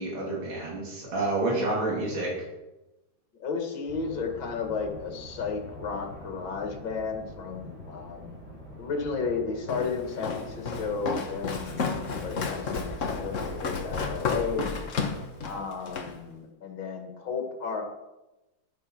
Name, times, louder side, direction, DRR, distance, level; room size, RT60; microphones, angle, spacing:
voice 1, 0.0-2.3, right 2 dB, 80° right, -3 dB, 3.6 m, -29 dB
voice 2, 3.4-8.3 8.8-14.6 15.4-17.8, left 5 dB, 75° left, 3 dB, 2.7 m, -33 dB
sound 1, 3.9-14.2, left 1 dB, 35° right, 4.7 m, -45 dB
Walk footsteps, 9.7-16.2, left 4 dB, 45° left, 1.5 m, -32 dB
11.5 x 9.3 x 6.2 m, 0.99 s
omnidirectional pair, 2.1 m